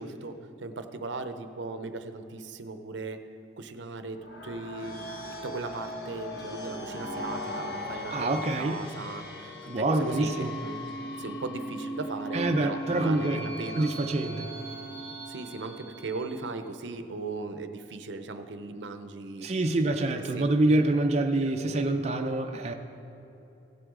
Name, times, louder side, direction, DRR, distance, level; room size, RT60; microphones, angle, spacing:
voice 1, 0.0-3.3 3.6-4.2 4.4-5.1 5.4-10.8 11.2-13.9 15.3-19.5 20.1-20.4 21.0-21.1 21.5-21.8, right 3 dB, 80° right, 8 dB, 0.7 m, -38 dB
sound 1, 4.1-16.6, equal, 60° left, 1.2 m, -38 dB
voice 2, 8.1-8.8 9.7-10.5 12.3-13.4 13.8-14.5 19.4-22.7, right 2 dB, 35° right, 4 dB, 0.4 m, -26 dB
16.0 x 7.8 x 3.7 m, 3.0 s
head